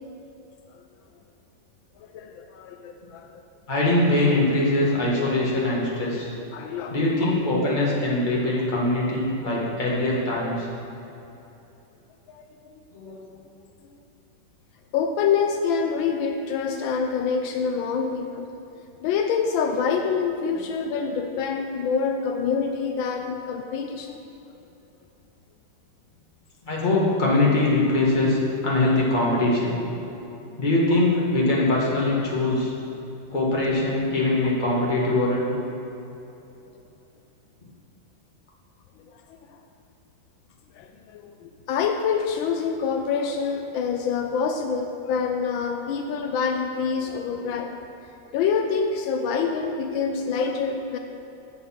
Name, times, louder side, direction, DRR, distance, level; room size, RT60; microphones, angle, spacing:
voice 1, 2.1-3.4 6.5-7.0 7.2-7.3 12.3-12.5 12.7-12.8 14.9-18.5 19.0-24.2 39.3-39.6 40.7-47.7 48.3-51.0, left 6 dB, 80° left, 5 dB, 1.4 m, -26 dB
voice 2, 3.7-6.3 6.9-10.7 12.9-13.3 26.6-29.8 30.6-32.7 33.3-35.5, left 2 dB, 25° left, -5 dB, 1.7 m, -22 dB
8.4 x 6.9 x 5.8 m, 2.9 s
omnidirectional pair, 2.1 m